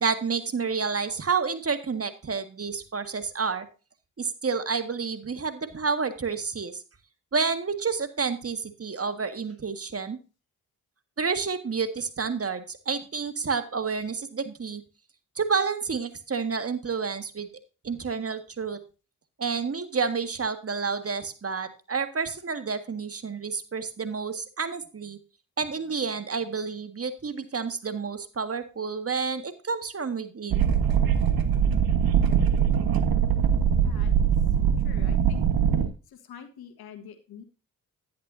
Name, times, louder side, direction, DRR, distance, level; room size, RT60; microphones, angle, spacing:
voice 1, 0.0-3.7 4.2-6.7 7.3-10.2 11.2-14.8 15.4-17.5 17.8-18.8 19.4-25.2 25.6-30.7, right 5 dB, 40° right, 9 dB, 1.7 m, -29 dB
sound 1, 30.5-35.9, right 8 dB, 70° right, 1.4 m, -22 dB
voice 2, 33.8-34.3 34.8-35.4 36.3-37.4, left 8 dB, 80° left, 8 dB, 1.5 m, -46 dB
10.5 x 10.5 x 2.7 m, 0.33 s
supercardioid pair, 50°, 37 cm